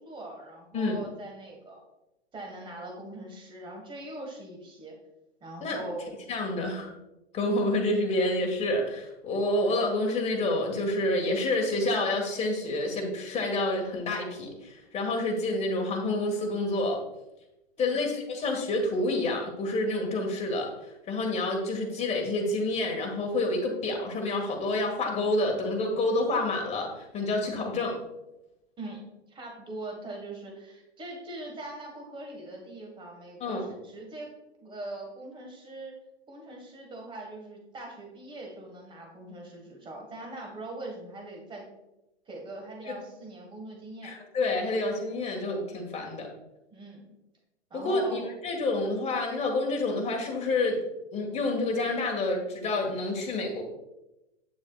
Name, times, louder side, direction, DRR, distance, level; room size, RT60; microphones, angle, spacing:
voice 1, 0.0-1.8 2.3-4.9 5.4-6.2 17.8-18.0 28.8-29.0 29.3-34.3 34.6-41.6 42.3-44.1 46.7-47.1 47.7-48.3, right 2 dB, 15° right, 1 dB, 1.7 m, -41 dB
voice 2, 6.3-6.9 7.3-17.0 17.8-20.7 21.1-27.9 33.4-33.7 42.9-43.0 44.0-46.3 47.7-50.8 51.1-53.6, left 2 dB, 20° left, 1 dB, 1.7 m, -28 dB
8.7 x 7.0 x 2.4 m, 0.94 s
hypercardioid pair, 115°, 35 cm